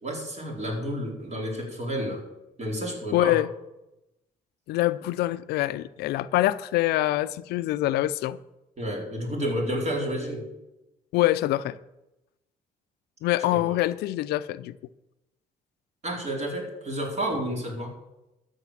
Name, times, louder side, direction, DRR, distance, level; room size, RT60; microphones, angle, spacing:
voice 1, 0.0-2.3 2.6-3.4 8.8-10.5 13.5-13.8 16.0-17.9, equal, 45° right, 4.3 m, -30 dB
voice 2, 3.1-3.5 4.7-8.4 11.1-11.8 13.2-14.7, left 16 dB, 85° left, 0.5 m, -25 dB
13.0 x 6.7 x 7.4 m
cardioid pair, 80°, 16 cm